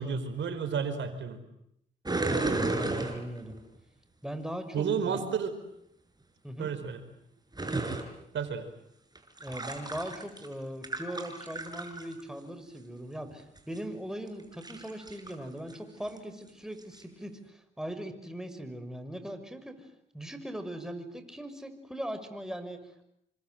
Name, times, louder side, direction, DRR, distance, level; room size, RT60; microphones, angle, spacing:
voice 1, 0.0-1.4 4.7-5.5 6.6-7.0 8.3-8.7, right 6 dB, 70° right, 10 dB, 5.0 m, -31 dB
sound 1, 2.0-3.6 7.5-8.0 9.2-10.5 10.8-12.2 13.6-13.8 14.4-15.3 15.7-15.8 16.1-16.2 16.8-17.0, right 2 dB, 20° right, 6.6 m, -33 dB
voice 2, 2.2-3.6 4.2-5.2 6.4-6.7 9.4-19.9 20.1-23.0, equal, 5° right, 8 dB, 6.1 m, -40 dB
29.5 x 25.5 x 7.9 m, 0.77 s
supercardioid pair, 55°, 20 cm